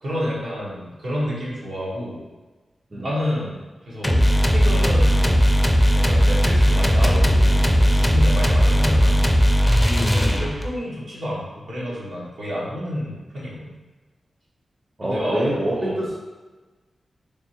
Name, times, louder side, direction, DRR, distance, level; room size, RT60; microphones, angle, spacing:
voice 1, 0.0-2.2 2.9-4.2 4.5-5.5 5.9-9.3 10.1-13.7 15.0-16.0, equal, 80° right, -7 dB, 1.2 m, -29 dB
sound 1, 4.0-10.8, equal, 10° left, 0.4 m, -17 dB
voice 2, 9.9-10.4 15.0-16.2, right 1 dB, 30° right, -3 dB, 0.6 m, -26 dB
3.5 x 3.2 x 2.9 m, 1.2 s
cardioid pair, 75°, 0 cm